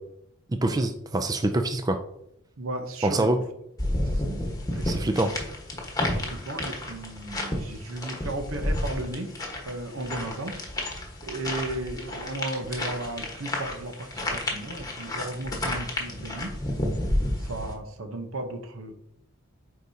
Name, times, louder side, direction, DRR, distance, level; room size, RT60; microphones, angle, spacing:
voice 1, 0.6-2.0 3.0-3.4 4.9-5.3, right 2 dB, 15° right, 6 dB, 0.3 m, -25 dB
voice 2, 2.6-3.3 4.1-4.4 4.7-5.2 6.1-9.3 9.6-10.6 11.2-16.5 17.4-18.9, right 2 dB, 70° right, 6 dB, 0.9 m, -35 dB
sound 1, 3.8-17.7, left 1 dB, 15° left, 1.3 m, -31 dB
8.2 x 4.8 x 2.8 m, 0.77 s
head